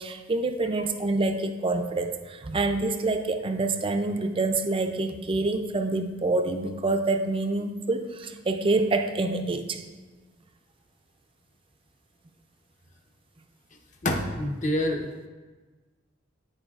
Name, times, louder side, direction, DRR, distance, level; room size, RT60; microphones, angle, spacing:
voice 1, 0.0-9.8, right 2 dB, 25° right, 7 dB, 0.4 m, -27 dB
voice 2, 14.0-15.1, left 1 dB, 40° left, 2 dB, 0.9 m, -26 dB
14.0 x 4.7 x 2.4 m, 1.3 s
head